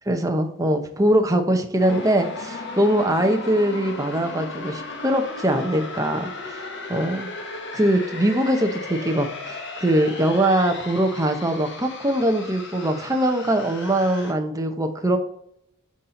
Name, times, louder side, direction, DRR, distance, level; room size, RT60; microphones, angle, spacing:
voice 1, 0.1-6.6 6.9-7.3 7.7-15.2, right 1 dB, 15° right, 5 dB, 0.7 m, -22 dB
sound 1, 1.8-14.3, left 3 dB, 55° left, 1.2 m, -36 dB
7.3 x 4.2 x 3.7 m, 0.73 s
head